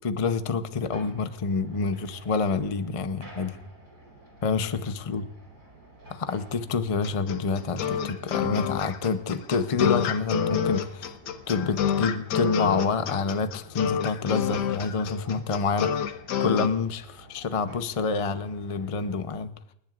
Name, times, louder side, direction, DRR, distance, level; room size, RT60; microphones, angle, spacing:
voice 1, 0.0-3.6 4.4-5.2 6.1-11.1 11.5-16.1 16.4-19.5, left 4 dB, 40° left, 10 dB, 0.4 m, -27 dB
sound 1, 0.9-19.1, right 2 dB, 85° right, 5.2 m, -51 dB
sound 2, 7.0-16.7, left 8 dB, 90° left, 1.5 m, -28 dB
29.5 x 10.5 x 2.5 m, 0.73 s
omnidirectional pair, 1.7 m